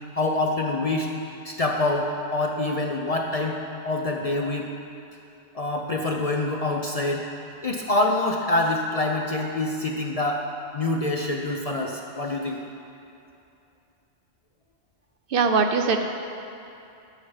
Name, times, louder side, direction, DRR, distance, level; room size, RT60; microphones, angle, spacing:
voice 1, 0.1-1.1 1.4-3.6 3.8-4.7 5.5-7.3 7.6-10.4 10.7-12.6, left 2 dB, 45° left, 1 dB, 0.5 m, -25 dB
voice 2, 15.3-16.1, right 4 dB, 60° right, 6 dB, 0.7 m, -21 dB
12.5 x 5.8 x 4.7 m, 2.6 s
omnidirectional pair, 1.1 m